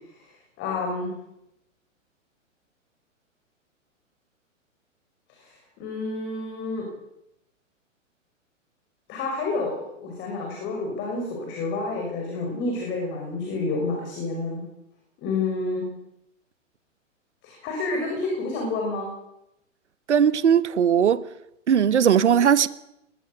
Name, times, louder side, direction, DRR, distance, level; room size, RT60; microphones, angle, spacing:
voice 1, 0.1-1.1 5.4-6.9 9.1-14.6 15.2-15.9 17.4-19.1, left 3 dB, 30° left, 6.1 m, -29 dB
voice 2, 20.1-21.2 21.7-22.7, right 8 dB, 60° right, 1.2 m, -18 dB
22.0 x 19.0 x 6.7 m
figure-of-eight pair, 110°, 39 cm